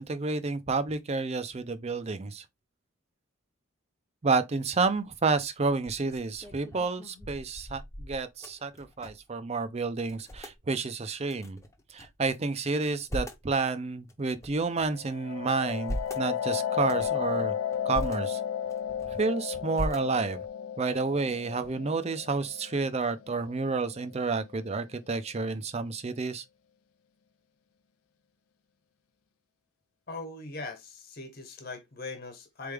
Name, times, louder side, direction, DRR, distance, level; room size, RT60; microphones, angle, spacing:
voice 1, 0.0-2.4 4.2-11.6 11.9-17.5 17.9-18.4 19.1-20.4 20.8-26.4, right 4 dB, 30° right, 0.5 m, -30 dB
sound 1, 5.0-5.1 5.6-9.4 9.6-9.7 10.0-10.6 11.3-12.3 12.7-13.5 14.1-15.0 15.5-16.3 16.8-17.2 17.7-18.2 18.6-19.3 19.7-20.5, equal, 15° left, 0.8 m, -39 dB
sound 2, 14.9-24.4, left 9 dB, 80° left, 0.4 m, -34 dB
voice 2, 30.1-32.7, left 3 dB, 45° left, 1.4 m, -40 dB
4.4 x 3.4 x 3.4 m
head